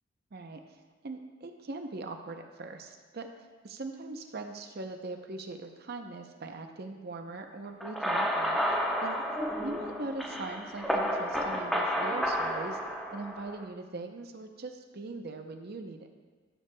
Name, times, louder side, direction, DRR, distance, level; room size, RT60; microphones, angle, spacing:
voice 1, 0.3-0.6 1.0-3.3 3.6-9.2 9.6-12.8 13.1-16.1, right 3 dB, 45° right, 5 dB, 0.6 m, -41 dB
sound 1, 7.8-13.6, equal, ahead, 0.7 m, -31 dB
13.0 x 6.9 x 2.2 m, 1.4 s
head